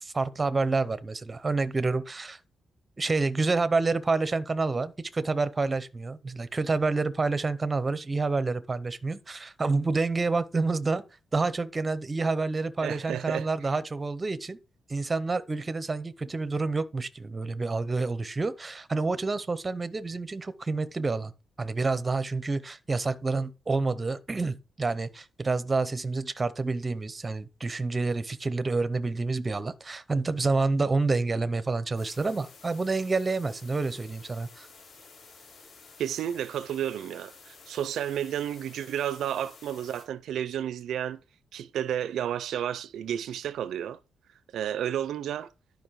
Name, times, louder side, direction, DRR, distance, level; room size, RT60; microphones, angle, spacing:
voice 1, 0.0-2.4 3.0-11.0 11.3-14.6 14.9-21.3 21.6-34.7, right 3 dB, 20° right, 0.6 m, -28 dB
voice 2, 12.8-13.5 36.0-41.2 41.5-44.0 44.5-45.5, right 10 dB, 90° right, 0.5 m, -31 dB
sound 1, 31.9-40.0, left 4 dB, 55° left, 3.2 m, -52 dB
11.5 x 5.3 x 4.7 m
wide cardioid pair, 165°, 0 cm